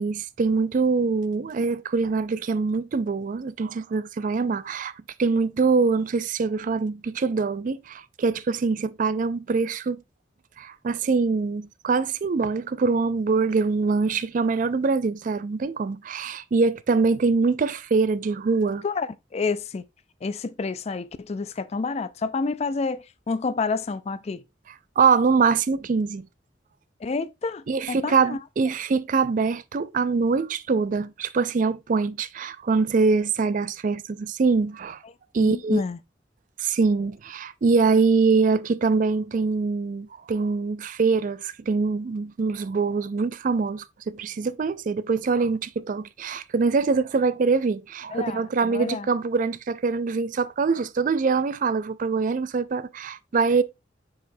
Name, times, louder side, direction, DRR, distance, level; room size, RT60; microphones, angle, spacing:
voice 1, 0.0-4.9 5.2-10.0 10.6-18.8 25.0-26.3 27.7-35.0 35.3-35.8 36.6-53.6, right 4 dB, 45° right, 0.4 m, -24 dB
voice 2, 18.8-19.8 20.2-24.4 27.0-28.4 35.4-36.0 48.1-49.1, left 4 dB, 35° left, 0.4 m, -29 dB
8.0 x 4.8 x 2.6 m
head